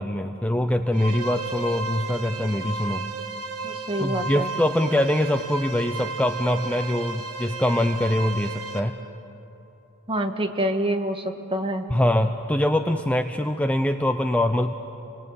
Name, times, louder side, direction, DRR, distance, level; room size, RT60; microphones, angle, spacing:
voice 1, 0.0-3.1 4.0-9.0 11.9-14.7, left 1 dB, 5° left, 7 dB, 0.7 m, -23 dB
sound 1, 0.9-8.8, right 3 dB, 80° right, 2.6 m, -33 dB
voice 2, 3.6-4.5 10.1-11.2 11.5-11.9, right 1 dB, 25° right, 4 dB, 1.7 m, -26 dB
29.0 x 22.0 x 8.9 m, 2.9 s
head